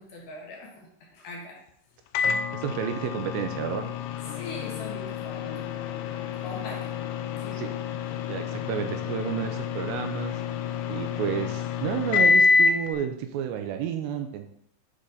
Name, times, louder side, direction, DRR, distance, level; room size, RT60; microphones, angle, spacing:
voice 1, 0.0-1.6 4.3-6.9 7.4-7.6, left 2 dB, 65° left, -2 dB, 2.8 m, -42 dB
Microwave oven, 2.2-12.9, left 5 dB, 80° left, 2.7 m, -27 dB
voice 2, 2.5-3.9 7.5-7.7 8.3-10.4 10.9-14.5, right 9 dB, 80° right, 6 dB, 2.6 m, -31 dB
9.8 x 4.1 x 3.9 m, 0.68 s
omnidirectional pair, 5.3 m